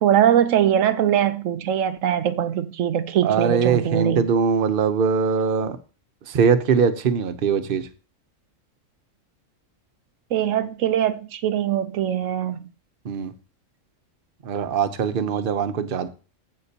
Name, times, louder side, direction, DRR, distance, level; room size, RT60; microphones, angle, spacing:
voice 1, 0.0-4.3 10.3-12.6, right 10 dB, 75° right, 1.0 m, -21 dB
voice 2, 3.2-5.8 6.3-7.9 13.0-13.3 14.4-16.1, right 6 dB, 50° right, 0.9 m, -22 dB
14.5 x 5.9 x 2.8 m
omnidirectional pair, 1.4 m